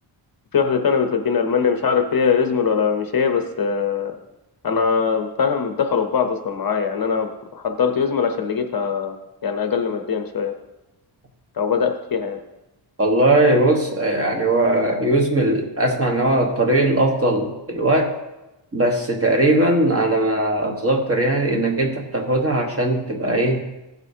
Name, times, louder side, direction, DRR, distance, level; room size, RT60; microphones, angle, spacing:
voice 1, 0.5-4.2 4.6-9.2 9.4-10.5 11.5-12.4, left 6 dB, 45° left, 5 dB, 0.8 m, -21 dB
voice 2, 13.0-18.2 18.7-23.6, right 1 dB, 30° right, 1 dB, 1.3 m, -19 dB
15.5 x 8.0 x 2.8 m, 0.97 s
wide cardioid pair, 165°, 48 cm